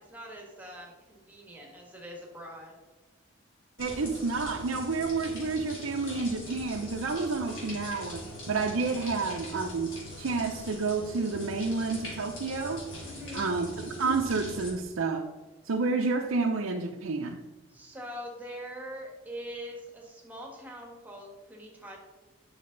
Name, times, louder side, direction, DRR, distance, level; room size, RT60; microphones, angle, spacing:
voice 1, 0.0-2.8 9.0-9.5 13.0-13.6 17.7-22.0, equal, 10° right, 1.6 m, -43 dB
sound 1, 3.8-14.7, left 1 dB, 75° left, 3.0 m, -42 dB
voice 2, 3.8-9.9 10.2-12.9 13.3-15.3 15.7-17.4, right 4 dB, 85° right, 0.6 m, -30 dB
9.5 x 6.3 x 3.9 m
head